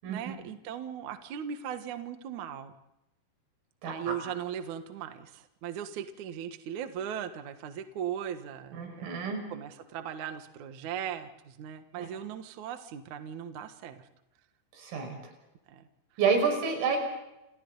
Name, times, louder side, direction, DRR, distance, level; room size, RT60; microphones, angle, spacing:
voice 1, 0.1-2.7 3.8-9.1 9.5-14.1 15.7-15.9, right 9 dB, 65° right, 8 dB, 1.9 m, -38 dB
voice 2, 3.8-4.1 8.7-9.4 12.0-12.1 14.7-15.1 16.2-17.0, right 5 dB, 90° right, 3 dB, 8.2 m, -28 dB
29.5 x 29.5 x 4.0 m, 0.90 s
omnidirectional pair, 5.7 m